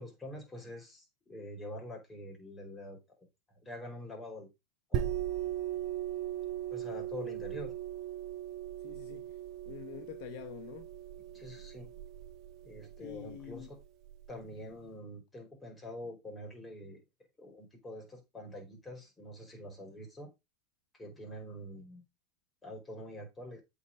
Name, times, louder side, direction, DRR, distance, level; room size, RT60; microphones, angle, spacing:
voice 1, 0.0-3.0 3.5-4.5 4.9-5.1 6.7-7.7 11.3-11.9 12.6-13.8 14.3-17.0 17.4-20.3 20.9-22.0 22.6-23.6, left 1 dB, 15° left, 5.0 m, -45 dB
sound 1, 4.9-14.3, right 11 dB, 45° right, 1.2 m, -39 dB
voice 2, 8.8-9.4 9.6-10.9 13.0-13.7, left 12 dB, 55° left, 1.2 m, -46 dB
8.2 x 5.3 x 5.1 m
supercardioid pair, 135°, 0 cm